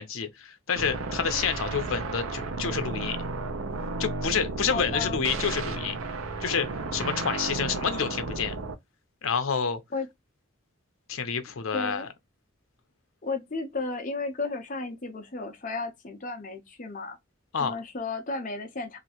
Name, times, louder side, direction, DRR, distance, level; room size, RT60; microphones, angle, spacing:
voice 1, 0.0-3.2 4.0-5.9 6.4-8.6 9.2-9.8 11.1-12.1 17.5-17.7, left 6 dB, 80° left, 0.6 m, -29 dB
sound 1, 0.7-8.7, right 3 dB, 90° right, 0.6 m, -33 dB
voice 2, 4.7-5.2 9.9-10.1 11.7-12.1 13.2-17.2 17.6-19.0, left 3 dB, 40° left, 0.7 m, -33 dB
2.9 x 2.5 x 2.8 m
head